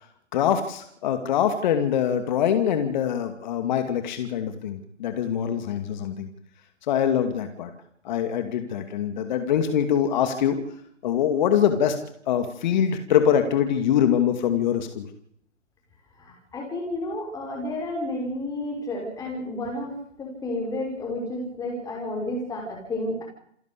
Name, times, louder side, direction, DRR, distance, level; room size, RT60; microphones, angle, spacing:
voice 1, 0.3-6.3 6.9-7.7 8.0-10.6 11.0-12.0 12.3-15.1, left 9 dB, 35° left, 8 dB, 2.5 m, -23 dB
voice 2, 16.2-23.2, left 1 dB, 10° left, -1 dB, 5.8 m, -31 dB
28.0 x 12.0 x 8.4 m, 0.68 s
figure-of-eight pair, 145°, 37 cm